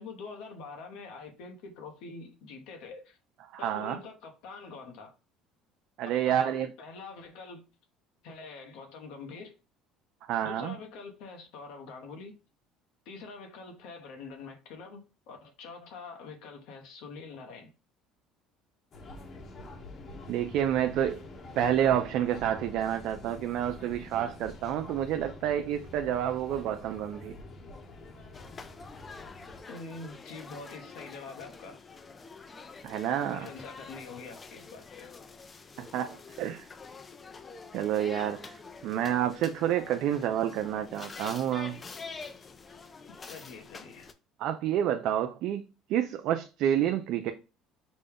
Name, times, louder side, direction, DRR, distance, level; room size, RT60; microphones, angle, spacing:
voice 1, 0.0-3.2 3.6-5.1 6.0-7.6 8.2-9.5 10.4-12.3 13.0-17.7 29.6-31.8 33.3-35.1 43.3-44.1, left 4 dB, 75° left, 1.0 m, -45 dB
voice 2, 3.5-4.0 6.0-6.7 10.3-10.8 20.3-21.2 21.6-27.4 32.8-33.5 35.8-36.7 37.7-38.6 38.8-41.8 44.4-45.6 45.9-47.3, right 10 dB, 65° right, 0.4 m, -29 dB
sound 1, 18.9-29.6, left 2 dB, 45° left, 1.0 m, -46 dB
sound 2, 28.3-44.1, left 4 dB, 30° left, 0.5 m, -46 dB
5.1 x 2.2 x 3.4 m
supercardioid pair, 85°, 0 cm